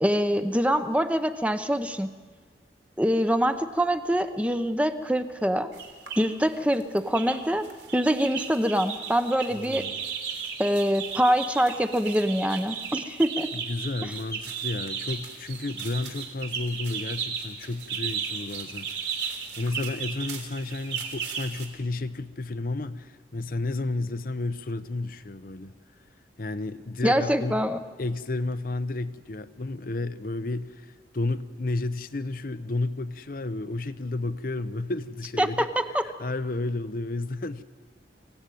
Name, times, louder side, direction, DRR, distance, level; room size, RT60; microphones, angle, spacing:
voice 1, 0.0-2.1 3.0-5.7 6.2-7.7 7.9-9.9 10.6-13.5 27.0-27.8 35.4-36.0, equal, 5° right, 0.9 m, -24 dB
sound 1, 5.7-6.2 6.7-7.4 7.6-21.7, right 7 dB, 75° right, 3.4 m, -35 dB
voice 2, 9.5-10.0 13.5-18.9 19.6-25.7 26.4-27.6 28.0-35.7 36.0-37.6, left 2 dB, 50° left, 0.7 m, -32 dB
25.0 x 16.0 x 9.2 m
head